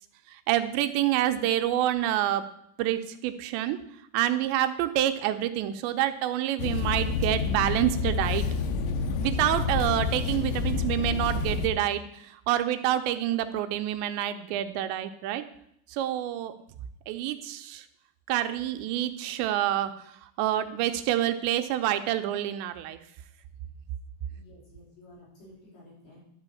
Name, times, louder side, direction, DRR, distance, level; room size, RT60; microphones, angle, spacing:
voice 1, 0.3-2.4 2.8-3.8 4.1-8.5 9.2-15.4 15.9-16.5 17.1-17.9 18.3-19.9 20.2-23.0, right 12 dB, 80° right, 9 dB, 2.9 m, -27 dB
sound 1, 6.6-11.7, left 4 dB, 90° left, 3.2 m, -28 dB
voice 2, 24.3-26.2, left 1 dB, 50° left, -6 dB, 6.3 m, -52 dB
11.5 x 5.7 x 8.2 m, 0.72 s
omnidirectional pair, 5.2 m